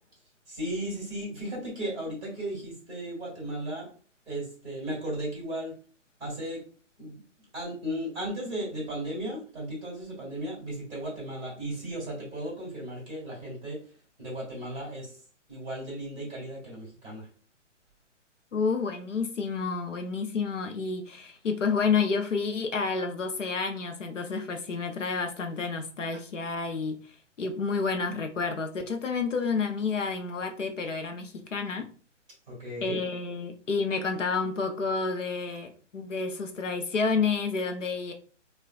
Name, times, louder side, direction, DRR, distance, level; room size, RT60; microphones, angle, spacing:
voice 1, 0.5-3.9 4.3-5.8 6.2-6.6 7.0-7.2 7.5-13.8 14.2-15.2 15.5-17.3 32.5-33.0, right 1 dB, 10° right, -4 dB, 1.7 m, -35 dB
voice 2, 18.5-27.0 27.4-31.9 32.8-38.1, left 4 dB, 75° left, 5 dB, 0.7 m, -30 dB
4.6 x 2.3 x 2.2 m, 0.41 s
figure-of-eight pair, 130°, 37 cm